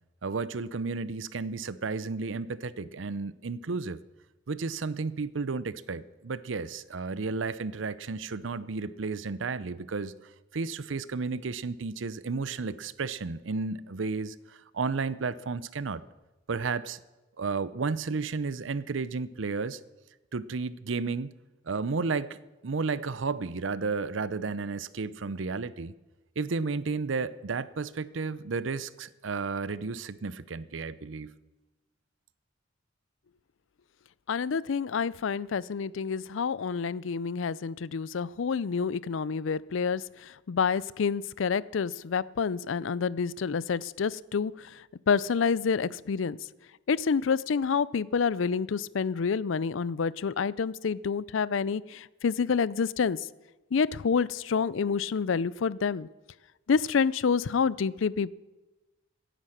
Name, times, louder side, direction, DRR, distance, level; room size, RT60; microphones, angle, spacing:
voice 1, 0.2-4.0 4.5-10.1 10.5-16.0 16.5-17.0 17.4-19.8 20.3-21.3 21.7-25.9 26.4-31.3, right 4 dB, 75° right, 17 dB, 0.6 m, -32 dB
voice 2, 34.3-40.0 40.5-44.5 45.1-46.4 46.9-53.2 53.7-56.1 56.7-58.3, left 5 dB, 80° left, 21 dB, 0.5 m, -28 dB
16.0 x 10.0 x 6.6 m, 1.1 s
head